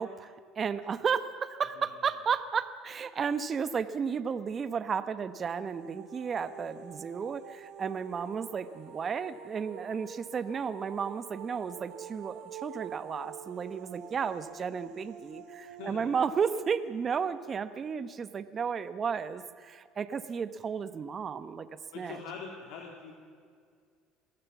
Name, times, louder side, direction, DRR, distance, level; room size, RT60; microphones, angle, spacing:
voice 1, 0.0-21.7 21.9-22.2, right 6 dB, 35° right, 12 dB, 1.1 m, -33 dB
sound 1, 5.3-18.1, right 6 dB, 75° right, 3.0 m, -48 dB
voice 2, 21.9-23.1, left 5 dB, 80° left, 0 dB, 3.0 m, -43 dB
22.0 x 16.0 x 7.3 m, 2.2 s
supercardioid pair, 110°, 0 cm